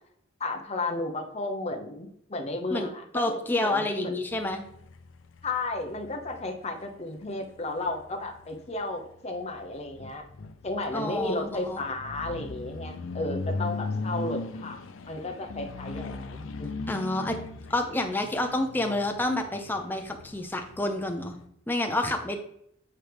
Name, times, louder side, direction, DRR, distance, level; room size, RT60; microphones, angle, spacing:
voice 1, 0.4-4.2 5.4-10.2 10.6-14.8 15.1-16.8, left 2 dB, 35° left, 3 dB, 0.9 m, -33 dB
voice 2, 3.1-4.6 10.9-11.8 16.9-17.4 17.7-21.4 21.7-22.4, left 2 dB, 10° left, 4 dB, 0.7 m, -29 dB
sound 1, 4.3-21.5, left 3 dB, 85° left, 0.5 m, -39 dB
8.3 x 4.5 x 3.4 m, 0.74 s
head